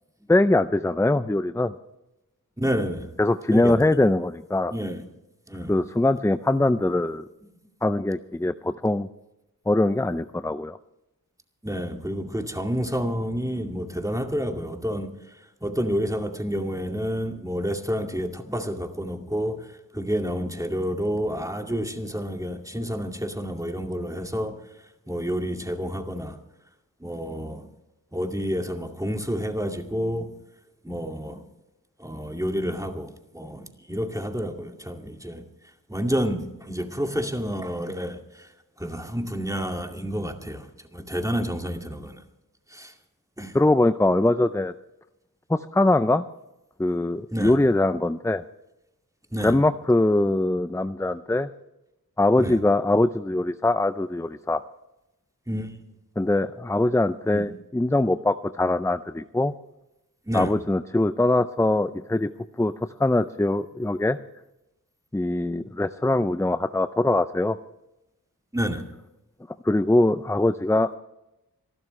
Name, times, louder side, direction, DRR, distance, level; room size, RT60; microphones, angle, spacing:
voice 1, 0.3-1.7 3.2-4.7 5.7-7.2 7.8-9.1 9.7-10.8 43.5-44.7 45.5-46.2 46.8-48.4 49.4-51.5 52.2-54.6 56.2-59.5 60.3-62.3 62.6-62.7 63.0-64.2 65.1-67.6 69.6-70.9, left 2 dB, 10° left, 11 dB, 0.5 m, -22 dB
voice 2, 2.6-3.2 3.5-3.9 4.7-5.0 5.5-5.9 11.6-24.6 25.1-26.4 27.0-27.7 28.1-30.3 30.8-31.4 32.0-35.5 35.9-38.5 38.8-42.2 42.7-42.9 43.4-43.6 47.3-47.5 49.3-49.5 52.4-52.6 55.5-55.8 57.3-57.5 60.3-60.5 68.5-68.9, equal, 10° right, 3 dB, 2.3 m, -29 dB
27.0 x 12.5 x 3.3 m, 0.93 s
wide cardioid pair, 45°, 37 cm